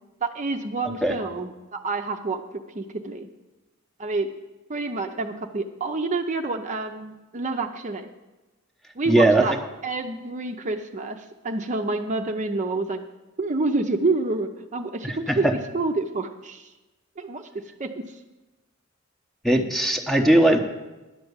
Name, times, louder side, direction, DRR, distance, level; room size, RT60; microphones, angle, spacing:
voice 1, 0.2-2.4 2.7-3.3 4.0-4.3 4.7-8.1 9.0-9.5 9.8-13.0 13.4-16.7 17.2-17.5 17.8-17.9, right 3 dB, 35° right, 5 dB, 0.6 m, -28 dB
voice 2, 9.1-9.5 15.0-15.5 19.4-20.6, right 1 dB, ahead, 5 dB, 0.8 m, -19 dB
11.0 x 5.8 x 8.0 m, 1.1 s
head